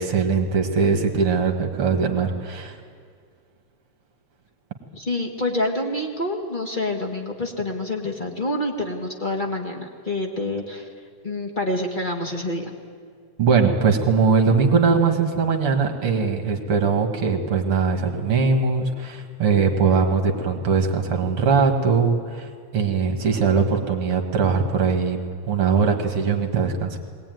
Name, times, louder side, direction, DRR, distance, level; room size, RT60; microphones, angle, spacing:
voice 1, 0.0-2.8 13.4-25.2 25.5-27.0, right 5 dB, 55° right, 4 dB, 2.3 m, -21 dB
voice 2, 4.9-10.9 11.2-12.7, left 1 dB, 25° left, 2 dB, 1.0 m, -27 dB
21.5 x 18.5 x 9.2 m, 2.1 s
omnidirectional pair, 3.3 m